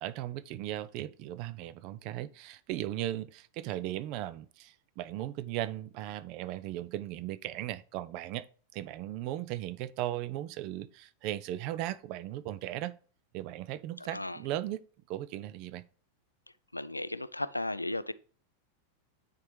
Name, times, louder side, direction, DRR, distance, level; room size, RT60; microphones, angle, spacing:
voice 1, 0.0-8.5 8.7-12.9 13.3-14.8 15.1-15.8, right 14 dB, 45° right, 0.4 m, -37 dB
voice 2, 16.7-18.1, left 2 dB, 85° left, 0.3 m, -35 dB
9.6 x 4.2 x 3.2 m
figure-of-eight pair, 90°, 0 cm